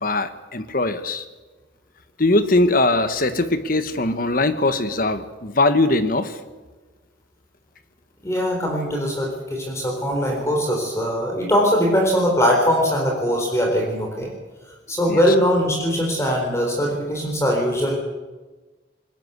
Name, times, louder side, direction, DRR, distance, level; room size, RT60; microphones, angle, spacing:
voice 1, 0.0-1.2 2.2-6.3 15.1-15.2, left 2 dB, 45° left, 10 dB, 1.4 m, -21 dB
voice 2, 8.2-14.3 14.9-17.9, equal, 15° left, 0 dB, 3.9 m, -21 dB
21.5 x 19.5 x 8.1 m, 1.2 s
head